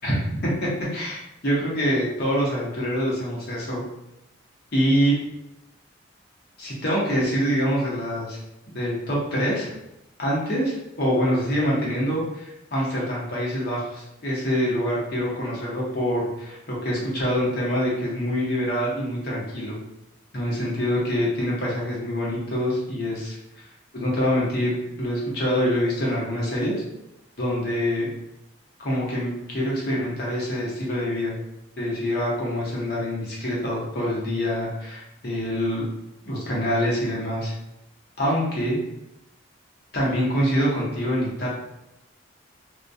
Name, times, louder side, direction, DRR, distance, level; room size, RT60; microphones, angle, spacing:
voice 1, 0.4-3.8 4.7-5.2 6.6-8.4 8.7-9.7 10.2-19.8 20.3-23.4 23.9-26.8 27.4-28.1 28.8-31.4 31.8-35.9 36.3-37.5 38.2-38.8 39.9-41.5, equal, 55° left, -5 dB, 0.8 m, -25 dB
2.2 x 2.2 x 2.5 m, 0.86 s
head